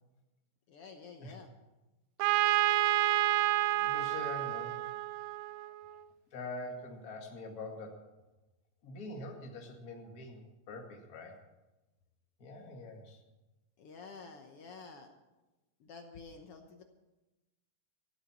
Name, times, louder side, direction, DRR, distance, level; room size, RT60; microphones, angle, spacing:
voice 1, 0.7-1.5 13.8-15.1 15.8-16.8, left 4 dB, 70° left, 4 dB, 1.3 m, -50 dB
Trumpet, 2.2-5.9, right 15 dB, 80° right, 2.2 m, -29 dB
voice 2, 3.8-4.8 6.3-8.1 8.8-11.4 12.4-13.2, left 2 dB, 35° left, 1 dB, 1.8 m, -44 dB
15.5 x 8.4 x 7.2 m, 1.1 s
omnidirectional pair, 4.0 m